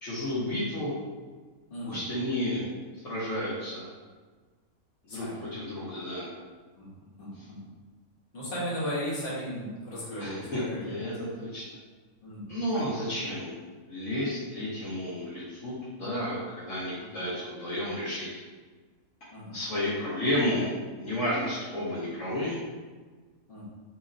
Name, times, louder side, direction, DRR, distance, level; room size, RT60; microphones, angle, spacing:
voice 1, 0.0-0.9 1.9-2.7 2.9-3.9 5.0-5.3 5.5-6.3 10.2-11.8 12.5-13.5 13.9-18.3 19.5-22.6, left 1 dB, 65° left, -9 dB, 1.2 m, -32 dB
voice 2, 1.7-2.0 5.1-5.4 6.8-6.9 7.2-7.6 8.3-11.0 12.2-12.9 17.0-17.2 19.3-19.5 23.5-23.7, equal, 40° left, -9 dB, 1.4 m, -36 dB
2.9 x 2.8 x 3.7 m, 1.4 s
omnidirectional pair, 1.4 m